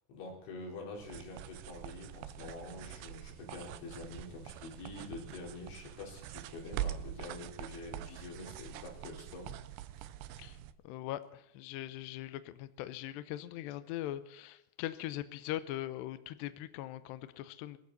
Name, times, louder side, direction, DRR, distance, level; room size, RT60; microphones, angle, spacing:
voice 1, 0.1-9.6 10.0-10.1, left 3 dB, 65° left, 0 dB, 6.3 m, -46 dB
sound 1, 1.0-10.7, right 13 dB, 80° right, 2.8 m, -44 dB
voice 2, 10.8-17.8, left 14 dB, 80° left, 13 dB, 2.5 m, -41 dB
24.0 x 14.5 x 4.1 m, 0.81 s
omnidirectional pair, 5.8 m